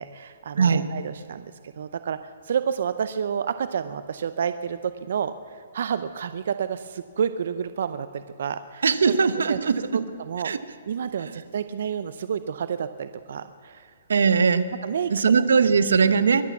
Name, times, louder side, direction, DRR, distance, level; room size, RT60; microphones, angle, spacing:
voice 1, 0.0-9.1 9.5-9.6 9.9-10.5 10.9-13.9 14.8-15.1 15.6-15.7, right 7 dB, 60° right, 12 dB, 0.6 m, -30 dB
voice 2, 8.8-10.0 10.4-10.6 14.1-14.7 15.1-16.4, right 5 dB, 90° right, 13 dB, 1.0 m, -20 dB
23.0 x 8.5 x 7.2 m, 2.4 s
hypercardioid pair, 165°, 0 cm